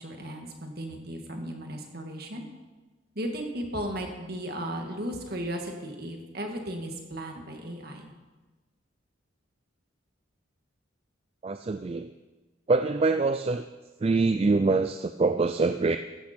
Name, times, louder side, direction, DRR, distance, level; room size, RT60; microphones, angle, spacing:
voice 1, 0.0-2.5 3.2-8.1, equal, 50° right, 3 dB, 1.9 m, -35 dB
voice 2, 11.4-12.1 12.7-13.6 14.0-16.0, right 3 dB, 30° right, 9 dB, 0.3 m, -24 dB
14.5 x 11.5 x 4.4 m, 1.2 s
head